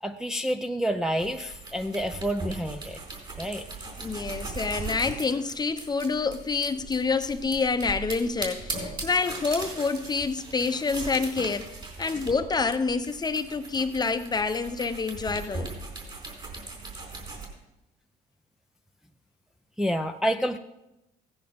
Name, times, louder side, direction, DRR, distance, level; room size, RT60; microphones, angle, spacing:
voice 1, 0.0-3.0 3.4-3.7 19.8-20.6, equal, 5° right, 0.6 m, -28 dB
sound 1, 1.2-17.5, right 3 dB, 30° right, 4.3 m, -39 dB
voice 2, 4.0-11.7 12.0-15.7, left 4 dB, 25° left, 0.9 m, -27 dB
16.0 x 10.0 x 5.3 m
cardioid pair, 110°, 17 cm